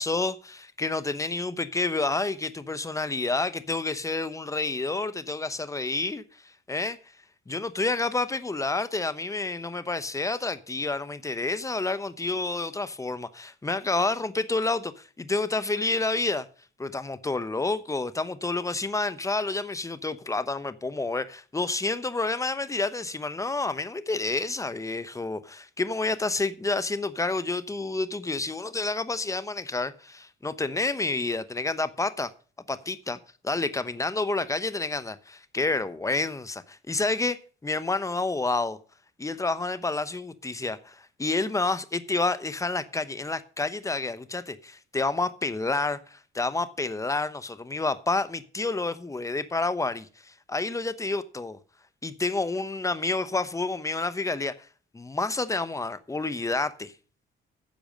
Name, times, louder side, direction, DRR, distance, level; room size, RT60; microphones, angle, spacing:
voice 1, 0.0-6.2 6.7-7.0 7.5-16.5 16.8-32.3 32.7-33.2 33.4-38.8 39.2-51.6 52.0-54.5 54.9-56.9, left 3 dB, 15° left, 0.9 m, -29 dB
10.5 x 7.0 x 6.5 m
cardioid pair, 90°, 20 cm